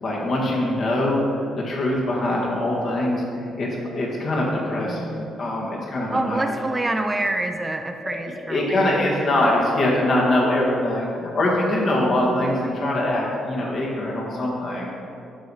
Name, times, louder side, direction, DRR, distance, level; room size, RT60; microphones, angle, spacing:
voice 1, 0.0-1.2 1.6-6.4 8.5-14.9, left 1 dB, 55° left, -3 dB, 1.7 m, -23 dB
voice 2, 4.8-5.4 6.1-9.5 12.0-12.6, right 2 dB, 20° right, 6 dB, 0.5 m, -28 dB
12.5 x 4.2 x 4.9 m, 2.6 s
cardioid pair, 90°, 0 cm